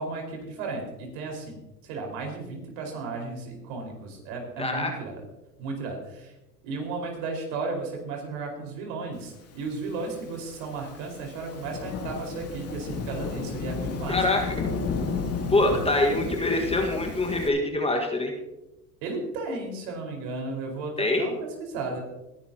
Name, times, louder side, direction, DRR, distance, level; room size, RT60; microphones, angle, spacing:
voice 1, 0.0-5.2 5.6-6.3 6.6-14.2 19.0-22.0, right 3 dB, 60° right, 2 dB, 5.1 m, -34 dB
voice 2, 4.6-4.9 14.1-14.6 15.5-18.3 21.0-21.3, left 2 dB, 10° left, 2 dB, 1.7 m, -24 dB
Thunderstorm / Rain, 9.8-17.5, left 4 dB, 30° left, 2.8 m, -33 dB
20.0 x 12.0 x 2.9 m, 0.97 s
hypercardioid pair, 95°, 47 cm